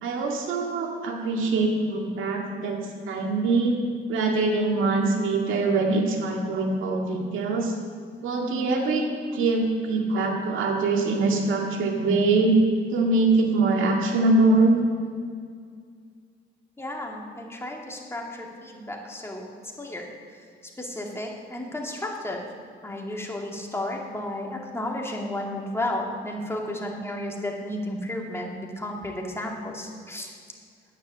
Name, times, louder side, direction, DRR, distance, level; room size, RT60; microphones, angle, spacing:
voice 1, 0.0-2.8 3.1-3.8 4.1-7.7 8.2-9.0 9.3-12.5 12.9-14.8, right 3 dB, 85° right, 1 dB, 2.0 m, -23 dB
voice 2, 16.8-19.4 19.8-20.1 20.8-22.4 22.8-30.3, left 1 dB, 10° left, 0 dB, 2.4 m, -33 dB
10.0 x 9.7 x 7.2 m, 2.1 s
cardioid pair, 90°, 20 cm